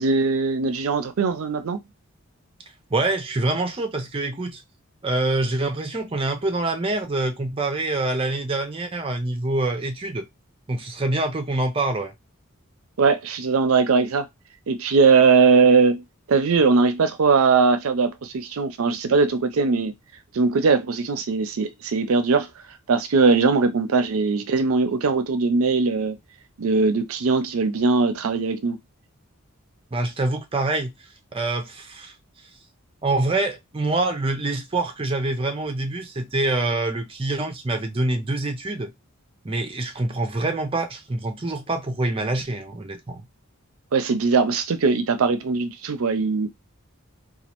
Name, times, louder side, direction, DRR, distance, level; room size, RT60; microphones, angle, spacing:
voice 1, 0.0-1.8 13.0-14.2 14.7-16.0 16.3-19.9 20.3-22.5 22.9-26.2 26.6-28.8 43.9-46.5, right 4 dB, 70° right, 0.5 m, -20 dB
voice 2, 2.9-4.6 5.0-10.3 10.7-12.1 29.9-30.9 31.3-32.1 33.0-38.9 39.4-43.3, right 2 dB, 25° right, 0.5 m, -25 dB
4.1 x 2.4 x 2.9 m
head